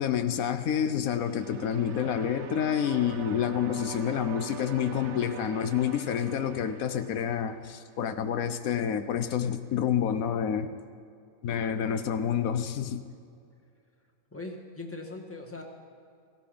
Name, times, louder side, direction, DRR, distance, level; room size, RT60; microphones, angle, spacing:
voice 1, 0.0-10.7 11.4-13.0, left 8 dB, 90° left, 11 dB, 1.2 m, -28 dB
sound 1, 1.0-8.0, right 6 dB, 60° right, 1.2 m, -43 dB
voice 2, 14.3-15.6, left 2 dB, 10° left, 1 dB, 1.7 m, -40 dB
18.0 x 15.5 x 5.2 m, 2.3 s
omnidirectional pair, 1.4 m